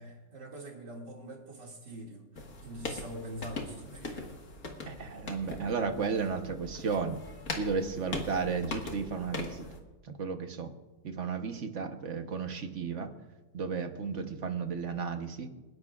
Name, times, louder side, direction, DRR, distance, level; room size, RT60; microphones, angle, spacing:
voice 1, 0.0-2.3 2.6-4.4, right 1 dB, 65° right, -1 dB, 3.0 m, -44 dB
sound 1, 2.3-9.8, left 3 dB, 50° left, 2.0 m, -41 dB
voice 2, 4.9-7.2 7.5-9.7 10.0-10.7 11.0-13.1 13.5-15.5, right 5 dB, 45° right, 6 dB, 1.2 m, -33 dB
28.5 x 11.0 x 2.4 m, 1.1 s
omnidirectional pair, 2.0 m